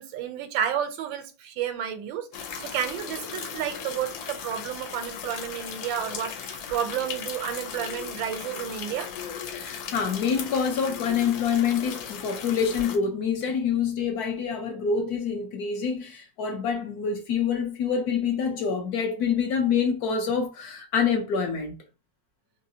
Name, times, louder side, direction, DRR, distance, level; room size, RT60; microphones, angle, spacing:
voice 1, 0.0-9.1, right 9 dB, 85° right, 1.3 m, -31 dB
sound 1, 2.3-13.0, left 7 dB, 90° left, 1.4 m, -37 dB
voice 2, 9.5-21.8, left 6 dB, 65° left, 1.0 m, -26 dB
4.0 x 2.7 x 2.7 m
omnidirectional pair, 2.0 m